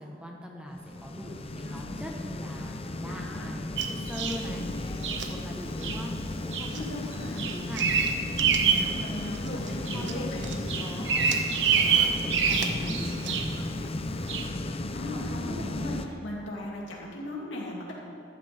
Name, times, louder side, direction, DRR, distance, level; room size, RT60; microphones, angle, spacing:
voice 1, 0.0-4.7 5.1-6.9 7.3-7.9 9.5-13.9, equal, 5° right, 0 dB, 1.1 m, -41 dB
sound 1, 0.8-16.1, left 2 dB, 30° left, 0.6 m, -35 dB
voice 2, 3.1-3.5 4.4-5.1 6.7-7.5 8.6-10.5 10.9-11.0 14.9-18.0, left 1 dB, 85° left, -3 dB, 2.6 m, -38 dB
Bird vocalization bird call bird song, 3.8-4.4 5.0-5.3 5.8-6.0 6.5-6.8 7.1-8.9 9.3-10.1 10.4-13.6 14.3-14.5, right 6 dB, 70° right, 0.9 m, -26 dB
14.0 x 11.5 x 3.5 m, 2.8 s
head